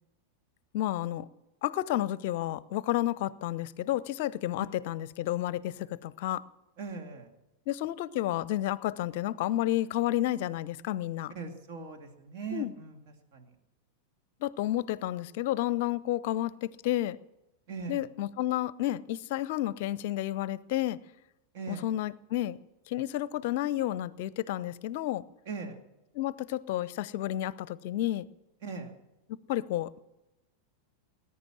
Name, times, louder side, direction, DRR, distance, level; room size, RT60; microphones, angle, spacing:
voice 1, 0.7-1.3 1.6-6.4 7.7-11.3 12.5-12.7 14.4-17.2 17.9-21.0 21.7-22.6 22.9-25.2 26.1-28.3 29.3-30.0, left 13 dB, 50° left, 21 dB, 0.6 m, -31 dB
voice 2, 6.8-7.3 11.3-13.0 13.3-13.5 17.7-18.1 21.5-21.9 25.5-25.8 28.6-28.9, right 5 dB, 50° right, 4 dB, 2.4 m, -39 dB
20.0 x 9.7 x 7.5 m, 0.97 s
figure-of-eight pair, 90°, 0 cm